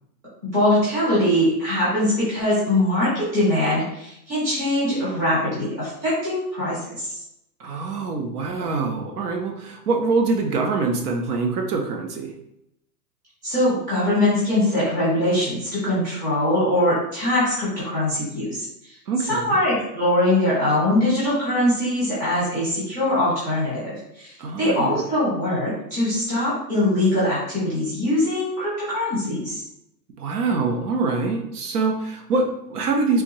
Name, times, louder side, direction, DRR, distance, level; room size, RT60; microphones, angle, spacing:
voice 1, 0.4-7.2 13.4-18.6 19.3-29.6, left 1 dB, 10° right, -11 dB, 0.5 m, -22 dB
voice 2, 7.6-12.3 19.1-19.6 24.4-25.0 30.2-33.2, right 3 dB, 65° right, 3 dB, 0.8 m, -24 dB
3.5 x 2.7 x 3.0 m, 0.80 s
supercardioid pair, 175°, 50 cm